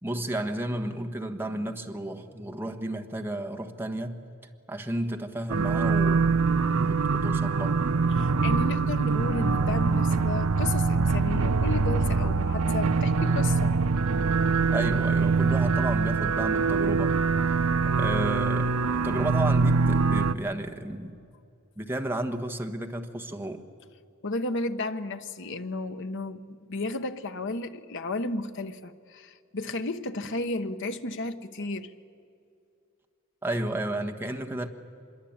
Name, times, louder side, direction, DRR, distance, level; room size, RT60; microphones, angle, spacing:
voice 1, 0.0-4.3 4.7-7.8 14.7-17.1 18.0-21.2 21.8-23.6 33.4-34.7, right 1 dB, 10° right, 1.3 m, -32 dB
sound 1, 5.5-20.3, right 4 dB, 85° right, 0.6 m, -24 dB
voice 2, 8.1-13.7 24.2-31.9, left 2 dB, 60° left, 1.1 m, -33 dB
25.0 x 22.0 x 8.8 m
head